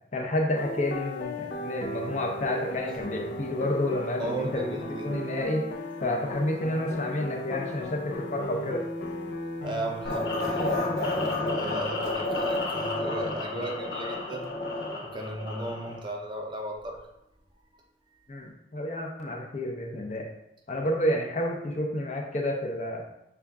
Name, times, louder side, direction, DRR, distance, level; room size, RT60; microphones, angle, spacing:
voice 1, 0.1-5.7 6.0-8.9 18.3-20.3 20.7-23.1, left 1 dB, 40° left, 1 dB, 0.6 m, -30 dB
sound 1, 0.5-10.8, left 1 dB, 80° left, 0.5 m, -36 dB
voice 2, 4.2-5.2 9.6-10.8 11.1-14.5 15.0-17.0, right 1 dB, 25° right, 1 dB, 0.5 m, -35 dB
sound 2, 10.0-16.0, left 2 dB, 65° left, 1.0 m, -30 dB
5.7 x 2.3 x 3.6 m, 0.87 s
head